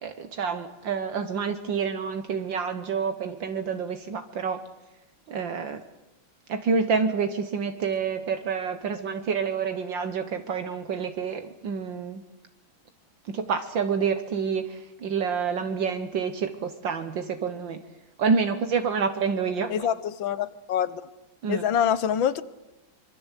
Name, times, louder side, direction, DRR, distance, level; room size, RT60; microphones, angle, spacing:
voice 1, 0.0-4.6 5.3-5.8 6.5-12.2 13.3-17.8 18.2-19.9 21.4-21.6, right 5 dB, 70° right, 1.9 m, -28 dB
voice 2, 19.7-21.0 21.5-22.4, left 9 dB, 70° left, 1.8 m, -25 dB
25.0 x 23.5 x 8.3 m
omnidirectional pair, 2.2 m